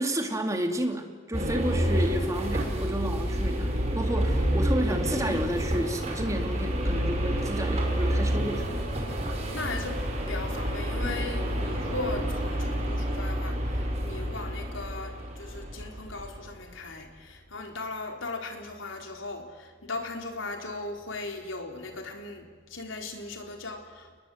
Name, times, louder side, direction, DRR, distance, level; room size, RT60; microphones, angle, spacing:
voice 1, 0.0-8.7, right 1 dB, 15° right, 4 dB, 2.4 m, -31 dB
sound 1, 1.3-16.5, equal, 35° right, 5.6 m, -29 dB
voice 2, 9.5-24.2, left 2 dB, 80° left, 3 dB, 4.1 m, -38 dB
30.0 x 21.0 x 8.0 m, 1.5 s
head